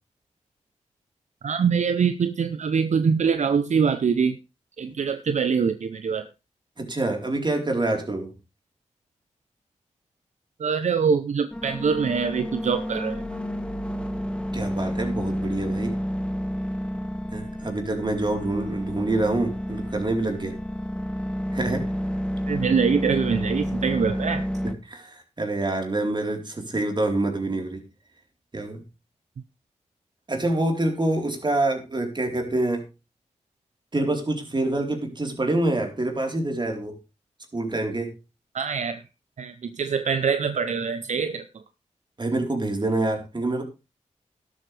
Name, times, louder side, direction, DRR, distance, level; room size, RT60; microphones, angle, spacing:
voice 1, 1.4-4.4 4.8-6.3 10.6-13.2 22.5-24.5 38.5-39.0 39.4-41.4, right 6 dB, 70° right, 11 dB, 0.7 m, -24 dB
voice 2, 6.8-8.3 14.5-16.0 17.3-20.5 21.5-21.9 24.6-27.8 28.5-28.8 30.3-32.9 33.9-37.0 37.5-38.2 42.2-43.6, right 2 dB, 35° right, 3 dB, 4.1 m, -26 dB
sound 1, 11.5-24.7, equal, 10° left, 1.4 m, -30 dB
12.5 x 12.0 x 3.4 m, 0.29 s
cardioid pair, 65°, 13 cm